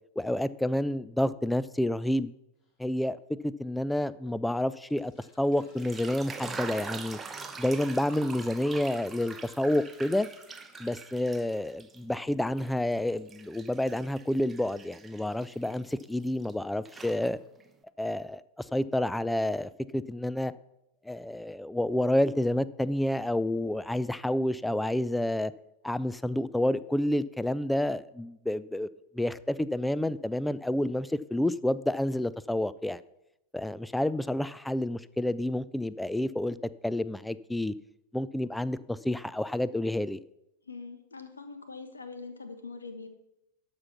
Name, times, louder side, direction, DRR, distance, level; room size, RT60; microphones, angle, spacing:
voice 1, 0.2-2.3 2.8-3.2 3.4-5.1 5.4-7.2 7.6-10.3 10.8-17.4 18.0-18.4 18.7-20.5 21.1-25.5 25.8-28.9 29.1-33.0 33.5-36.6 36.8-37.7 38.1-40.2, left 1 dB, 5° left, 17 dB, 0.4 m, -29 dB
sound 1, 2.6-2.8 3.5-3.6 4.5-10.9 12.5-12.6 12.9-13.0, left 2 dB, 30° left, 2.5 m, -58 dB
sound 2, 5.6-12.0 12.4-16.5 16.8-17.7, right 4 dB, 15° right, 0.8 m, -44 dB
voice 2, 40.7-43.1, left 4 dB, 75° left, 8 dB, 1.2 m, -43 dB
12.5 x 5.7 x 5.8 m, 0.85 s
figure-of-eight pair, 90°, 0 cm